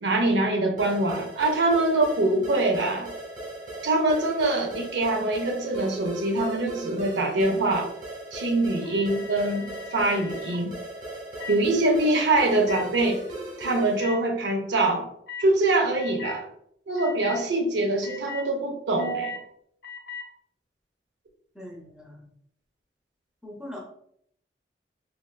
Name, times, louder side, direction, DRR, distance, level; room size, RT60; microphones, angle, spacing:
voice 1, 0.0-3.1 3.8-7.9 8.3-10.7 11.5-13.2 13.6-15.0 15.4-16.5 16.9-19.4, right 2 dB, 90° right, 3 dB, 0.6 m, -24 dB
sound 1, 0.8-14.1, right 1 dB, 45° right, 0.9 m, -38 dB
sound 2, 8.8-10.6 11.4-11.6 12.6-12.8 14.0-14.1 15.3-15.5 15.9-16.4 17.0-17.4 18.0-18.5 19.0-19.4 19.8-20.3, left 6 dB, 65° left, 0.5 m, -39 dB
voice 2, 21.5-22.2 23.4-23.8, left 1 dB, 5° right, -3 dB, 0.6 m, -41 dB
3.3 x 2.4 x 2.3 m, 0.70 s
head